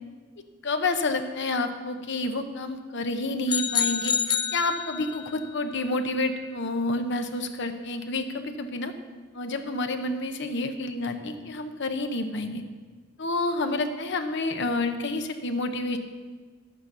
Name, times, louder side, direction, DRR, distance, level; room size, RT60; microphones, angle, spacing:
voice 1, 0.6-4.1 4.5-8.9 9.3-12.6 13.2-16.0, left 2 dB, 60° left, 7 dB, 0.9 m, -29 dB
sound 1, 3.5-5.3, left 7 dB, 25° left, 0.5 m, -27 dB
11.5 x 8.8 x 5.4 m, 1.4 s
head